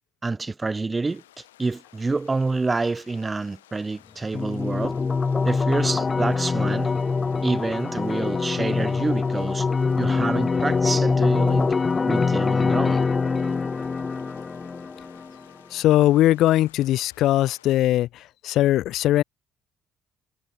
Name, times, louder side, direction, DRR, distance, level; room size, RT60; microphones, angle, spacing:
voice 1, 0.2-5.0 5.4-6.9 7.4-9.7 10.0-11.7 12.1-13.1, right 3 dB, 25° right, 0.6 m, -27 dB
sound 1, 1.0-17.8, left 14 dB, 85° left, 6.0 m, -55 dB
sound 2, 4.3-15.4, left 4 dB, 35° left, 0.8 m, -24 dB
voice 2, 15.7-19.2, left 14 dB, 65° left, 0.6 m, -20 dB
hypercardioid pair, 50°, 0 cm